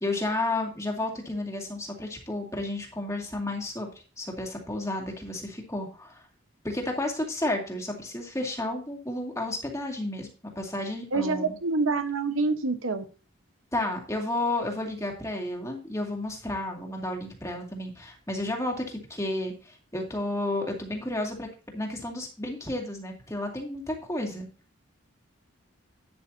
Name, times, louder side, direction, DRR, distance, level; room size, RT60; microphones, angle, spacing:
voice 1, 0.0-3.9 4.2-6.2 6.6-10.3 10.6-11.5 13.7-21.5 21.7-24.5, left 1 dB, 15° left, 1 dB, 2.3 m, -32 dB
voice 2, 11.1-13.0, right 3 dB, 80° right, 9 dB, 1.2 m, -26 dB
11.5 x 10.0 x 2.8 m, 0.35 s
head